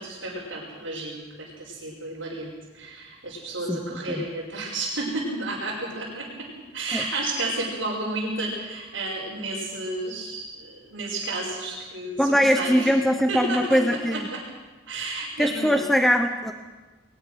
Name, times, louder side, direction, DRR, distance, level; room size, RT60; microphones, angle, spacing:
voice 1, 0.0-6.5 6.7-12.9 13.3-13.8 14.1-14.4 14.9-15.8, right 2 dB, 70° right, -7 dB, 5.2 m, -32 dB
voice 2, 3.7-4.2 6.9-7.1 12.2-14.3 15.4-16.5, equal, ahead, 6 dB, 0.8 m, -22 dB
21.5 x 20.0 x 6.4 m, 1.2 s
head